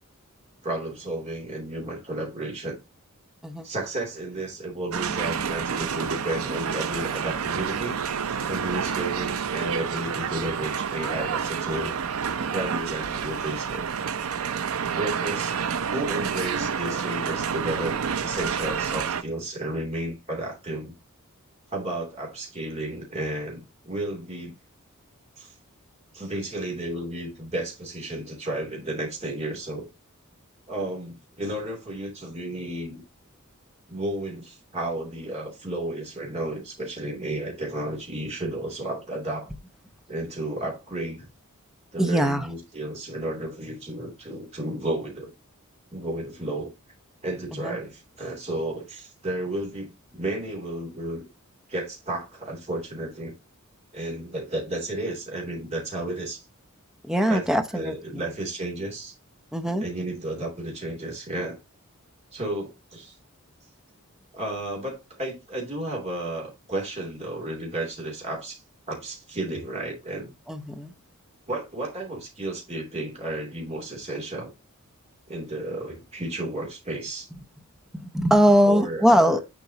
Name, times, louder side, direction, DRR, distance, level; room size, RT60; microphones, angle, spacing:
voice 1, 0.6-2.8 3.6-8.0 8.5-12.0 12.5-13.9 14.9-15.6 15.9-20.9 21.7-24.5 25.4-25.5 26.1-29.9 30.7-33.0 33.9-39.5 40.1-41.2 41.9-45.3 45.9-46.7 47.2-51.2 51.7-53.3 53.9-56.4 57.3-57.4 57.7-59.1 59.8-61.6 62.3-63.1 64.3-68.6 68.9-70.3 71.5-74.5 75.3-77.3 78.6-79.4, right 1 dB, 30° right, 2.8 m, -32 dB
sound 1, 4.9-19.2, right 7 dB, 75° right, 0.5 m, -29 dB
voice 2, 42.0-42.5 47.5-47.8 57.1-58.2 59.5-59.8 70.5-70.9 77.9-79.4, equal, ahead, 0.7 m, -21 dB
7.1 x 5.3 x 2.8 m
head